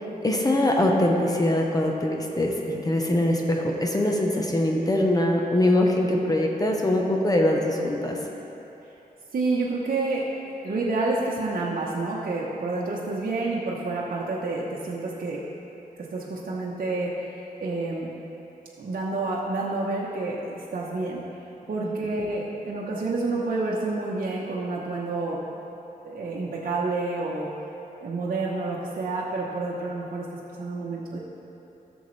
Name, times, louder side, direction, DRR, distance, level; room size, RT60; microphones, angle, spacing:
voice 1, 0.2-8.2 21.8-21.9, left 1 dB, 25° left, 0 dB, 0.9 m, -23 dB
voice 2, 9.3-15.4 16.1-18.1 18.8-21.2 21.7-25.4 26.0-27.5 28.0-30.3 30.6-31.2, right 3 dB, 60° right, -5 dB, 1.0 m, -29 dB
13.0 x 7.1 x 3.2 m, 2.9 s
wide cardioid pair, 95°, 16 cm